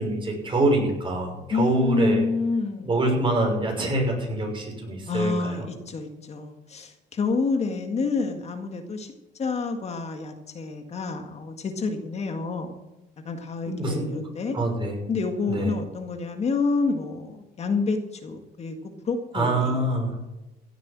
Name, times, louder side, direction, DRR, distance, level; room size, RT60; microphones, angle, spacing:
voice 1, 0.0-2.2 2.8-5.7 13.7-14.2 14.5-15.0 15.5-15.7 19.3-20.2, right 1 dB, 30° right, 1 dB, 6.1 m, -25 dB
voice 2, 1.5-2.9 5.1-9.1 9.4-12.8 13.2-14.6 15.1-18.8 19.0-19.8, left 4 dB, 40° left, 5 dB, 1.8 m, -28 dB
16.0 x 8.1 x 7.5 m, 0.98 s
cardioid pair, 110°, 17 cm